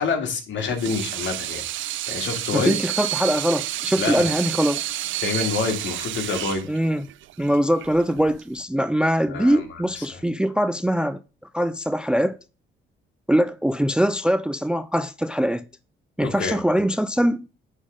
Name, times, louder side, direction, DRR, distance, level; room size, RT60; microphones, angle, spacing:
voice 1, 0.0-1.6 2.1-2.7 4.0-4.3 5.2-6.6 9.3-10.2 16.3-16.6, left 5 dB, 70° left, 2.3 m, -27 dB
Water tap faucet / Sink (filling or washing), 0.6-8.6, right 15 dB, 75° right, 0.4 m, -30 dB
voice 2, 2.5-4.8 6.7-7.1 7.4-11.2 11.5-12.4 13.3-15.6 16.2-17.4, equal, 5° right, 0.4 m, -22 dB
9.5 x 3.6 x 5.1 m
cardioid pair, 90°, 20 cm